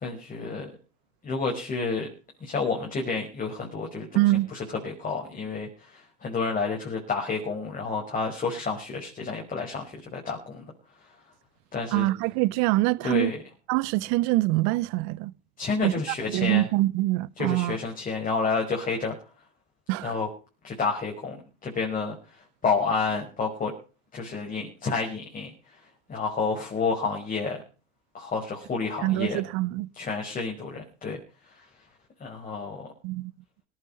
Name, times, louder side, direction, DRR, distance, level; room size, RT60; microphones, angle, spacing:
voice 1, 0.0-0.7 1.2-2.1 2.4-4.1 4.5-4.6 4.8-5.7 6.2-10.7 11.7-12.1 13.0-13.4 15.6-16.6 17.4-19.1 20.0-20.3 20.6-21.3 21.6-22.1 22.6-23.7 24.1-25.5 26.1-27.6 28.1-29.4 30.0-31.2 32.2-32.8, left 4 dB, 20° left, 5.5 m, -29 dB
voice 2, 4.1-4.5 11.9-13.3 13.7-15.3 15.8-16.0 16.3-17.8 19.9-20.2 29.0-29.9 33.0-33.3, right 18 dB, 45° right, 0.9 m, -24 dB
18.0 x 10.0 x 5.3 m
hypercardioid pair, 110°, 39 cm